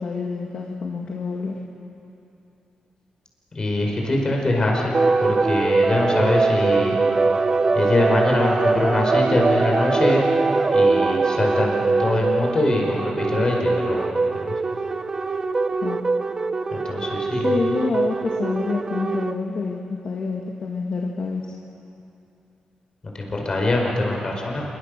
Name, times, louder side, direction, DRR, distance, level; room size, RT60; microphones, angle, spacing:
voice 1, 0.0-1.6 15.8-16.0 17.4-21.4, left 4 dB, 50° left, 0 dB, 1.9 m, -27 dB
voice 2, 3.6-4.9 5.2-7.0 7.8-10.2 10.7-14.1 14.4-14.5 16.7-17.6 23.1-24.6, left 2 dB, 35° left, -1 dB, 5.3 m, -23 dB
sound 1, 4.9-19.3, right 3 dB, 30° right, 0.8 m, -22 dB
27.0 x 23.5 x 6.7 m, 2.8 s
wide cardioid pair, 120°, 2 cm